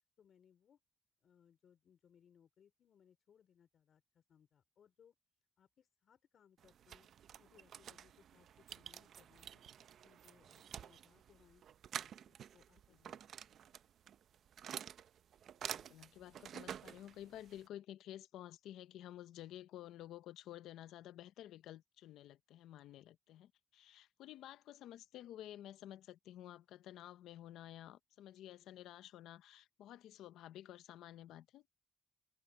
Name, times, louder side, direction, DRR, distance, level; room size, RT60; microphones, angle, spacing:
voice 1, 0.2-0.8 1.2-5.1 5.6-7.1 7.4-9.6 10.0-11.6 11.9-13.5, left 8 dB, 60° left, 4.7 m, -69 dB
sound 1, 6.6-17.7, right 9 dB, 65° right, 0.6 m, -50 dB
voice 2, 15.7-31.7, left 12 dB, 85° left, 0.7 m, -52 dB
cardioid pair, 90°, 0 cm